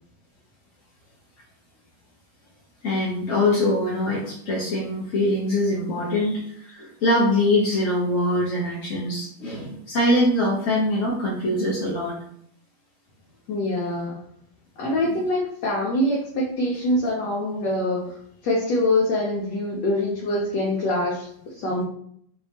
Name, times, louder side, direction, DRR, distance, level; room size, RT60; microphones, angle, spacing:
voice 1, 2.8-12.2, left 1 dB, 55° left, -5 dB, 1.0 m, -23 dB
voice 2, 13.5-14.2 14.8-21.8, left 1 dB, 75° left, -3 dB, 1.4 m, -25 dB
4.2 x 2.9 x 2.8 m, 0.65 s
omnidirectional pair, 1.9 m